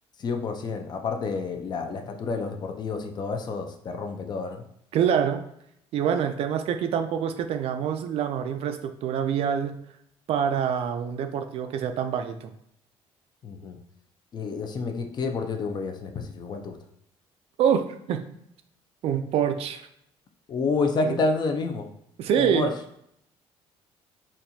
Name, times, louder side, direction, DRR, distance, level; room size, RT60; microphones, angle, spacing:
voice 1, 0.2-4.6 13.4-13.8 14.3-16.8 20.5-21.9 22.4-22.7, left 4 dB, 40° left, 4 dB, 0.5 m, -29 dB
voice 2, 4.9-5.4 5.9-9.8 10.3-12.5 17.6-18.2 19.0-19.9 21.0-21.2 22.2-22.7, right 8 dB, 65° right, 8 dB, 0.4 m, -26 dB
4.2 x 2.4 x 2.7 m, 0.72 s
cardioid pair, 115°, 11 cm